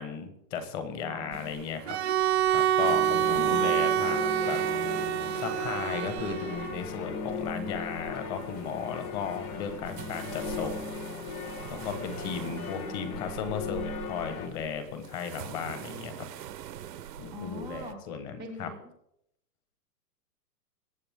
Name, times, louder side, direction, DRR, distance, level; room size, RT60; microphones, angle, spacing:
voice 1, 0.0-2.0 2.5-4.9 5.3-10.9 11.7-16.2 17.2-18.7, left 6 dB, 25° left, 9 dB, 1.4 m, -35 dB
voice 2, 0.9-1.6 3.2-3.6 12.5-13.1 17.3-18.0 18.4-18.8, equal, 5° left, -2 dB, 0.5 m, -42 dB
sound 1, 1.3-17.9, right 10 dB, 75° right, 1.1 m, -45 dB
Bowed string instrument, 1.9-6.8, right 10 dB, 45° right, 0.5 m, -27 dB
sound 2, 2.8-14.5, left 6 dB, 60° left, 2.1 m, -38 dB
23.0 x 8.0 x 3.7 m, 0.77 s
hypercardioid pair, 160°, 49 cm